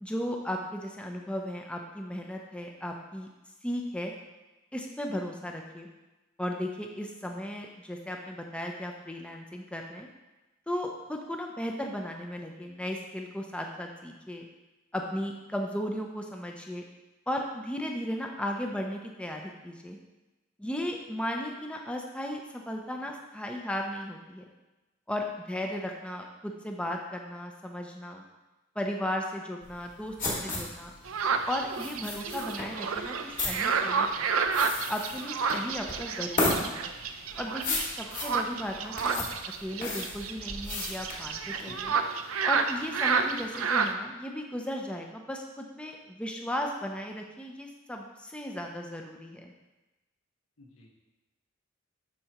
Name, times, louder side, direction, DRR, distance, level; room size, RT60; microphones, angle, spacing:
voice 1, 0.0-3.3 3.6-4.1 4.7-5.9 6.4-10.1 10.7-14.4 14.9-16.8 17.3-20.0 20.6-24.5 25.1-28.2 28.8-30.9 31.5-34.3 34.9-36.9 37.4-39.2 39.6-41.9 42.5-49.5, equal, 5° left, 2 dB, 0.5 m, -36 dB
sound 1, 29.6-41.8, left 2 dB, 40° left, 2.0 m, -34 dB
sound 2, 31.1-43.9, right 5 dB, 90° right, 0.5 m, -30 dB
voice 2, 41.7-42.0 50.6-50.9, left 1 dB, 80° left, 1 dB, 1.3 m, -51 dB
12.0 x 4.7 x 3.0 m, 1.1 s
head